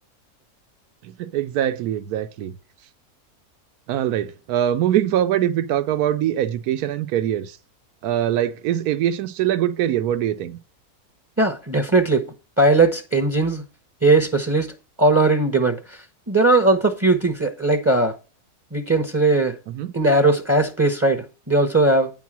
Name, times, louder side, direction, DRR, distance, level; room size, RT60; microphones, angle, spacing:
voice 1, 1.0-2.5 3.9-7.6 8.0-10.6 19.7-19.9, right 11 dB, 75° right, 1.2 m, -23 dB
voice 2, 11.4-12.3 12.6-13.6 14.0-14.7 15.0-16.0 16.3-18.1 18.7-19.5 19.9-22.1, right 2 dB, 15° right, 0.6 m, -18 dB
9.4 x 4.5 x 6.0 m
omnidirectional pair, 1.6 m